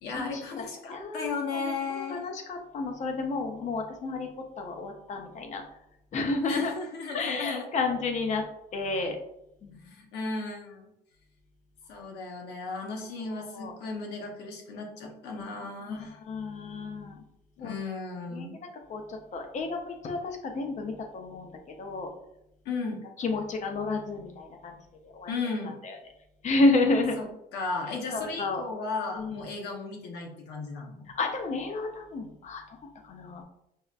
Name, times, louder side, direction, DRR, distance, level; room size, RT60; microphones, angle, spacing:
voice 1, 0.0-2.2 6.4-7.7 9.8-10.9 11.9-16.2 17.6-18.6 22.6-23.0 25.3-25.8 27.2-31.1, left 4 dB, 80° left, 1 dB, 0.9 m, -35 dB
voice 2, 0.9-4.3 4.6-5.6 6.1-6.7 7.1-8.4 8.7-9.2 9.6-9.8 13.3-13.7 15.9-17.2 17.6-17.8 18.3-22.1 23.2-24.8 25.1-25.3 25.8-26.0 26.4-27.2 28.1-28.6 29.1-29.4 31.1-32.6 33.0-33.4, left 3 dB, 45° left, 4 dB, 0.7 m, -31 dB
5.5 x 2.1 x 2.4 m, 0.82 s
cardioid pair, 110°, 17 cm